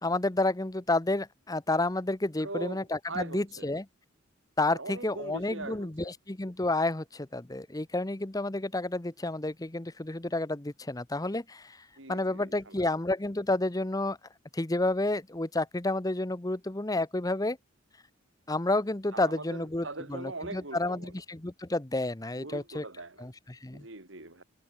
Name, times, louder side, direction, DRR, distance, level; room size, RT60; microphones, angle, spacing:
voice 1, 0.0-3.9 4.6-11.8 12.1-14.2 14.5-17.6 18.5-22.8 23.2-23.9, left 2 dB, 20° left, 0.9 m, -30 dB
voice 2, 2.4-3.7 4.7-5.9 12.0-12.9 19.1-21.1 22.4-23.3 23.7-24.4, right 2 dB, 70° right, 3.6 m, -41 dB
head